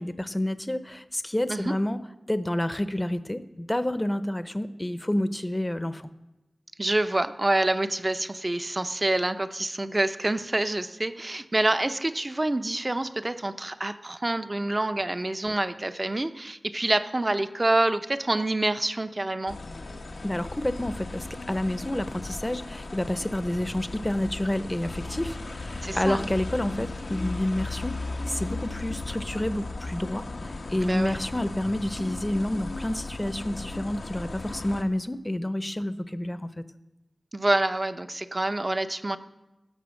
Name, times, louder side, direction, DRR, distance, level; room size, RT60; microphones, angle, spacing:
voice 1, 0.0-2.0 2.3-6.1 20.2-28.0 28.3-36.6, left 1 dB, 20° left, 13 dB, 0.7 m, -29 dB
voice 2, 6.8-19.6 25.8-26.3 30.8-31.2 37.3-39.2, right 2 dB, 35° right, 11 dB, 0.6 m, -27 dB
sound 1, 19.5-34.8, left 2 dB, 90° left, 1.0 m, -36 dB
16.0 x 6.8 x 6.4 m, 1.0 s
wide cardioid pair, 60°, 0 cm